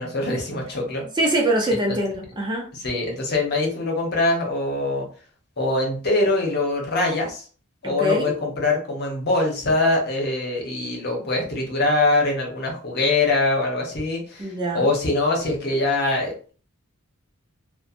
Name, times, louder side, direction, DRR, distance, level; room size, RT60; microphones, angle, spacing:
voice 1, 0.0-1.0 1.7-2.0 2.7-5.1 5.6-7.4 7.8-16.5, left 2 dB, 50° left, 0.9 m, -23 dB
voice 2, 1.2-2.7 7.8-8.3 14.4-14.9, right 1 dB, 20° right, 0.5 m, -23 dB
2.9 x 2.1 x 2.4 m
head